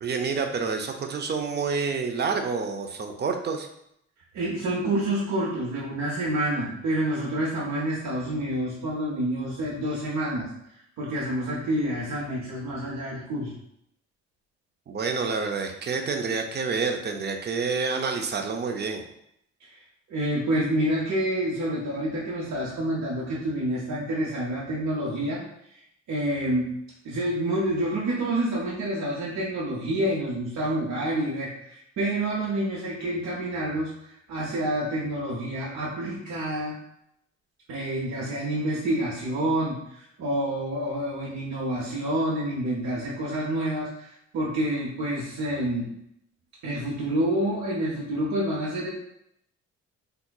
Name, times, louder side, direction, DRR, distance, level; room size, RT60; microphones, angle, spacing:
voice 1, 0.0-3.7 14.9-19.0, right 4 dB, 35° right, 5 dB, 0.5 m, -28 dB
voice 2, 4.3-10.5 11.0-13.5 20.1-25.4 26.1-26.7 27.0-33.9 34.3-36.7 37.7-45.9 46.6-48.9, right 1 dB, 65° right, -5 dB, 0.8 m, -28 dB
3.4 x 2.8 x 2.3 m, 0.76 s
cardioid pair, 90°, 30 cm